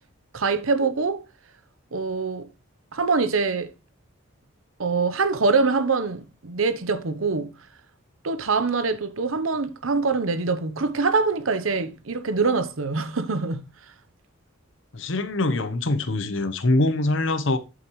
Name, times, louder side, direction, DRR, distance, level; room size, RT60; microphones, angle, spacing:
voice 1, 0.3-1.2 1.9-2.5 2.9-3.7 4.8-7.5 8.2-13.7, right 4 dB, 80° right, 0.9 m, -24 dB
voice 2, 14.9-17.6, left 2 dB, 65° left, 0.9 m, -23 dB
8.6 x 7.3 x 3.1 m
head